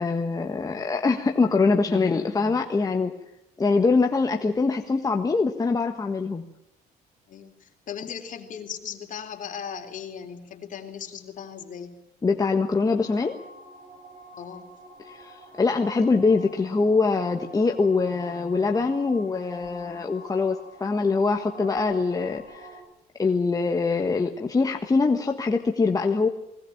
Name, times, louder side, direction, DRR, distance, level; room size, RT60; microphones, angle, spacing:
voice 1, 0.0-3.1 3.6-6.4 12.2-13.4 15.0-22.7 23.2-26.3, left 4 dB, 20° left, 3 dB, 1.5 m, -23 dB
voice 2, 7.3-12.0 14.3-14.7, left 7 dB, 50° left, 5 dB, 3.7 m, -38 dB
sound 1, 12.9-22.8, right 2 dB, 45° right, 6.7 m, -46 dB
20.5 x 18.5 x 8.9 m, 0.85 s
cardioid pair, 110°, 17 cm